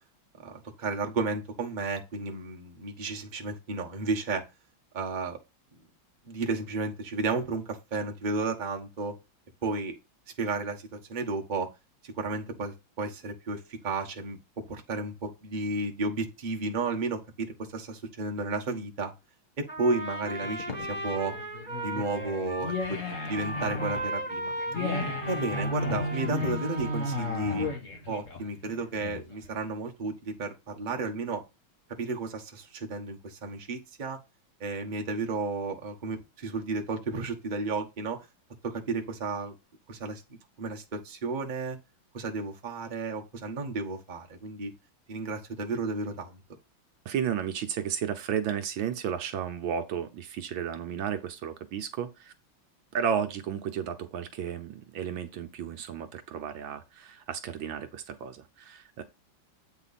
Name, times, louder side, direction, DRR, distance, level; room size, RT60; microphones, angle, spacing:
voice 1, 0.4-4.4 4.9-5.4 6.3-9.1 9.6-9.9 10.4-11.7 12.0-14.4 14.7-19.1 19.6-21.3 21.8-24.5 25.3-27.7 28.1-31.4 32.0-34.2 34.6-38.2 38.6-39.5 39.9-40.2 40.6-41.8 42.1-44.7 45.1-46.4, right 3 dB, 25° right, 1.2 m, -33 dB
Trumpet, 19.7-27.8, right 1 dB, 5° left, 1.6 m, -37 dB
sound 1, 20.4-29.5, left 3 dB, 40° left, 2.0 m, -34 dB
voice 2, 47.0-52.3 52.9-59.0, right 8 dB, 70° right, 1.5 m, -33 dB
8.2 x 4.9 x 4.1 m
omnidirectional pair, 2.3 m